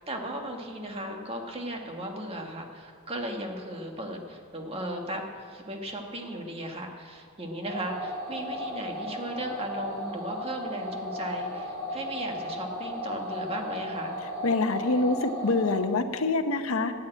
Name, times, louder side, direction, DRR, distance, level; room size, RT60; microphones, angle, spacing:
voice 1, 0.0-14.2, right 1 dB, 30° right, 2 dB, 1.6 m, -36 dB
sound 1, 7.6-15.8, equal, 50° right, 3.1 m, -35 dB
voice 2, 14.4-16.9, left 3 dB, 80° left, 8 dB, 0.9 m, -26 dB
12.5 x 8.6 x 8.9 m, 2.2 s
head